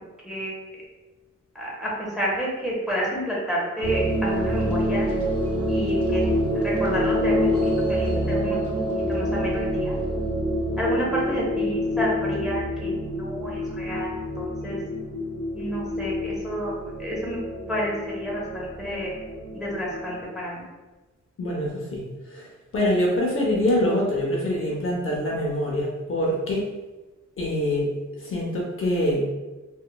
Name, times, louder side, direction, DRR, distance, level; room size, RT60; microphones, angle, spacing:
voice 1, 0.2-0.6 1.5-5.1 5.7-6.2 6.6-7.5 7.9-10.0 10.8-14.1 14.4-14.8 15.5-16.7 17.0-17.4 17.7-19.1 19.5-20.6, equal, ahead, -5 dB, 0.5 m, -30 dB
sound 1, 3.8-20.2, equal, 50° right, 0.6 m, -27 dB
voice 2, 21.4-26.7 27.4-27.9 28.2-29.2, left 1 dB, 45° left, -3 dB, 0.5 m, -25 dB
2.9 x 2.1 x 2.2 m, 1.2 s
wide cardioid pair, 165°, 30 cm